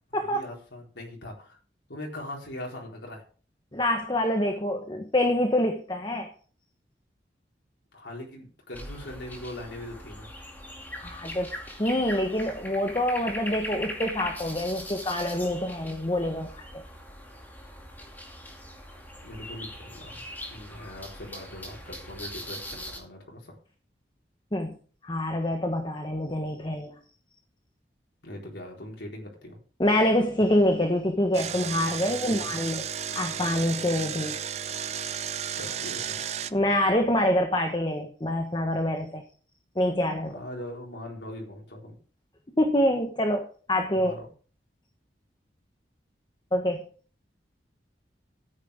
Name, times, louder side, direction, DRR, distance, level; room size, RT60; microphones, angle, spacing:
voice 1, 0.1-1.6 1.9-3.2 7.9-10.3 19.2-20.2 20.5-23.6 28.2-29.6 32.0-32.6 35.5-36.2 40.2-42.0 43.9-44.3, left 1 dB, 90° left, -1 dB, 4.2 m, -41 dB
voice 2, 3.7-6.3 11.0-11.5 11.8-16.8 24.5-24.7 25.0-27.0 29.8-32.8 33.1-34.3 36.5-39.2 39.7-40.3 42.6-44.1 46.5-46.8, left 1 dB, 25° left, 4 dB, 1.2 m, -26 dB
sound 1, 8.7-23.0, left 1 dB, 10° left, 2.4 m, -41 dB
Engine, 31.3-36.5, right 8 dB, 35° right, 0.5 m, -33 dB
13.5 x 9.3 x 3.5 m, 0.41 s
head